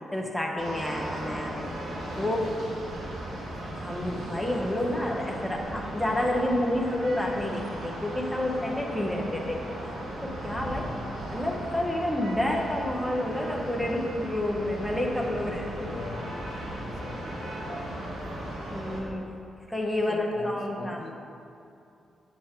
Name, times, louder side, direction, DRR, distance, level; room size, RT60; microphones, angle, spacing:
voice 1, 0.0-1.7 2.2-2.4 3.8-10.9 11.3-15.6 18.7-19.3 19.7-21.0, left 1 dB, ahead, -1 dB, 0.7 m, -29 dB
sound 1, 0.6-19.0, right 1 dB, 80° right, 1.6 m, -37 dB
voice 2, 2.1-2.6 2.9-3.0 3.3-3.4 10.7-11.2 15.3-18.3 20.1-21.1, left 4 dB, 50° left, 3 dB, 0.6 m, -43 dB
7.3 x 6.2 x 4.4 m, 2.6 s
wide cardioid pair, 160°, 0 cm